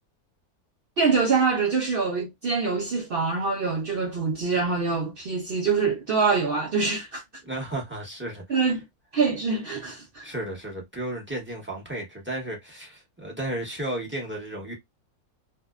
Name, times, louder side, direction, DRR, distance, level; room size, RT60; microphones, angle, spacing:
voice 1, 1.0-7.2 8.5-8.8 9.1-10.3, right 4 dB, 65° right, 0.5 m, -25 dB
voice 2, 7.4-8.7 10.2-14.7, right 1 dB, 10° right, 0.7 m, -33 dB
2.7 x 2.0 x 2.3 m
omnidirectional pair, 1.5 m